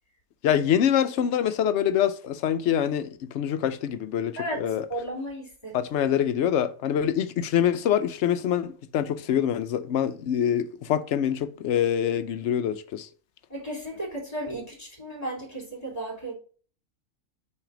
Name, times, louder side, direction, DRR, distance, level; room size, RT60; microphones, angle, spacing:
voice 1, 0.4-4.9 5.7-13.1, left 9 dB, 65° left, 0.7 m, -25 dB
voice 2, 4.9-5.7 13.5-16.3, right 1 dB, 25° left, 2.7 m, -34 dB
6.0 x 3.3 x 4.8 m
omnidirectional pair, 1.5 m